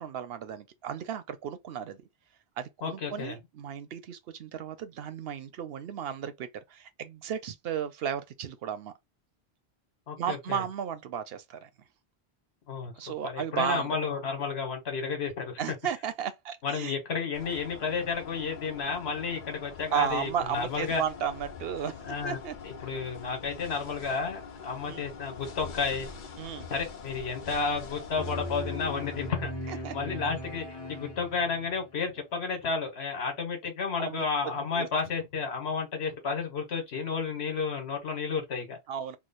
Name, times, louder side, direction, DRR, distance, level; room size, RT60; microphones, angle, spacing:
voice 1, 0.0-2.0 2.6-8.9 10.2-11.7 13.0-14.0 15.6-16.9 19.9-22.6 24.9-25.1 26.4-26.7 29.7-29.9 34.0-34.2 34.7-34.9 38.9-39.2, right 9 dB, 65° right, 0.8 m, -34 dB
voice 2, 2.8-3.4 10.1-10.6 12.7-12.9 13.2-15.6 16.6-21.0 22.0-22.4 22.6-26.1 26.7-38.8, left 5 dB, 70° left, 1.3 m, -32 dB
sound 1, 17.3-29.3, left 5 dB, 55° left, 0.7 m, -44 dB
sound 2, 28.2-31.9, left 1 dB, 25° left, 1.0 m, -38 dB
3.1 x 2.0 x 4.0 m
omnidirectional pair, 1.1 m